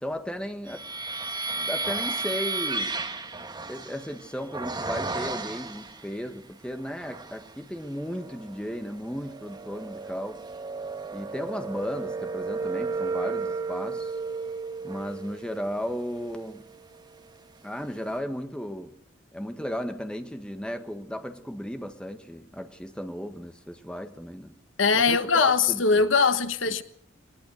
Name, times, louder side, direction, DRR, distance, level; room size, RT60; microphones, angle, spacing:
voice 1, 0.0-0.9 1.5-3.0 3.7-10.4 11.1-14.1 14.8-16.6 17.6-18.9 19.3-24.5 24.9-26.1 26.7-26.8, equal, 5° left, 1.6 m, -35 dB
sound 1, 0.7-6.1 6.7-7.5 8.0-17.2, right 3 dB, 20° right, 1.5 m, -34 dB
voice 2, 24.8-26.8, left 4 dB, 90° left, 1.3 m, -21 dB
22.5 x 20.0 x 6.7 m
head